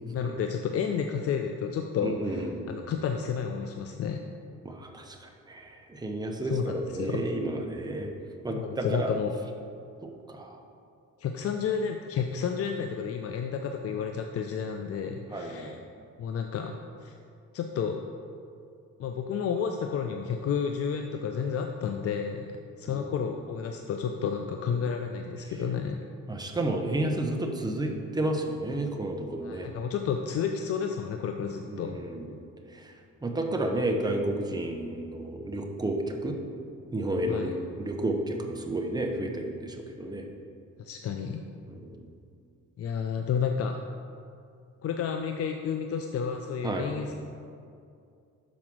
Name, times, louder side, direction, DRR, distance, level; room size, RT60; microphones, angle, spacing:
voice 1, 0.0-4.2 6.4-7.2 8.5-9.3 11.2-15.8 16.2-17.2 17.5-18.0 19.0-26.0 29.4-32.0 37.3-37.5 40.8-41.4 42.8-43.8 44.8-47.1, left 7 dB, 50° left, 5 dB, 0.5 m, -31 dB
voice 2, 2.0-2.7 4.6-8.1 8.4-9.1 10.0-10.6 15.3-15.8 22.9-23.1 26.3-29.7 31.7-32.4 32.7-32.9 33.2-36.4 36.9-40.3 41.7-42.0 46.6-46.9, right 1 dB, 15° right, 2 dB, 0.8 m, -31 dB
6.1 x 4.9 x 6.1 m, 2.4 s
cardioid pair, 90°, 30 cm